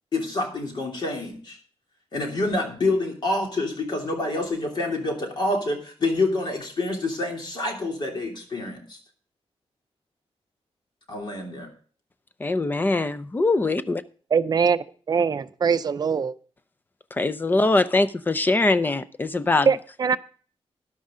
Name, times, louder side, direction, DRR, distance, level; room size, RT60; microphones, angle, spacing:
voice 1, 0.1-1.6 2.1-9.0 11.1-11.7, left 2 dB, 45° left, 1 dB, 3.1 m, -27 dB
voice 2, 12.4-14.0 17.1-19.7, left 2 dB, 20° left, 14 dB, 0.5 m, -22 dB
voice 3, 14.3-14.8 15.1-16.3 19.7-20.2, right 6 dB, 40° right, 12 dB, 0.5 m, -22 dB
13.0 x 11.0 x 3.8 m, 0.42 s
wide cardioid pair, 170°, 10 cm